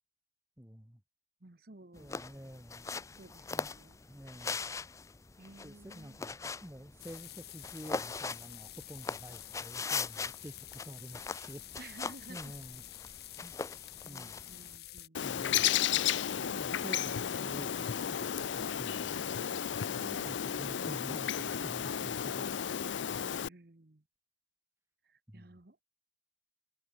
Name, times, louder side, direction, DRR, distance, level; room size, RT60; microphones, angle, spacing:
voice 1, 0.6-1.0 1.9-2.9 3.5-3.7 4.1-4.6 5.6-11.6 12.3-12.8 13.4-13.5 14.1-14.4 15.2-15.8 16.5-19.2 19.9-22.6 25.3-25.5, equal, 15° right, 1.9 m, -49 dB
voice 2, 1.4-2.1 3.2-4.0 5.4-6.2 11.8-12.5 14.0-15.4 20.0-20.8 23.2-24.0 25.1-25.8, right 2 dB, 55° right, 1.2 m, -54 dB
sound 1, 2.0-14.8, left 4 dB, 15° left, 0.4 m, -41 dB
sound 2, 7.0-15.1, left 14 dB, 55° left, 2.0 m, -49 dB
Bird, 15.1-23.5, left 9 dB, 90° left, 0.5 m, -33 dB
head